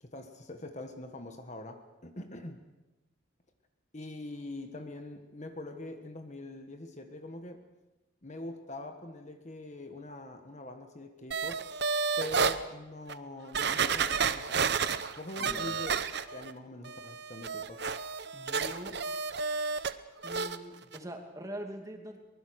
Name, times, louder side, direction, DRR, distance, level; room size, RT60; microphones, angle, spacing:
voice 1, 0.0-2.6 3.9-7.6 8.2-11.6 12.2-14.7 15.2-15.9 16.3-17.8, left 1 dB, 35° left, 6 dB, 1.5 m, -43 dB
sound 1, 11.3-12.6 13.1-13.2 13.5-16.5 16.8-19.9 20.2-20.6 20.9-21.0, right 5 dB, 55° right, 0.9 m, -31 dB
voice 2, 15.4-15.7 18.3-18.9 20.2-22.2, equal, 15° right, 3 dB, 2.5 m, -43 dB
23.5 x 20.5 x 6.5 m, 1.1 s
head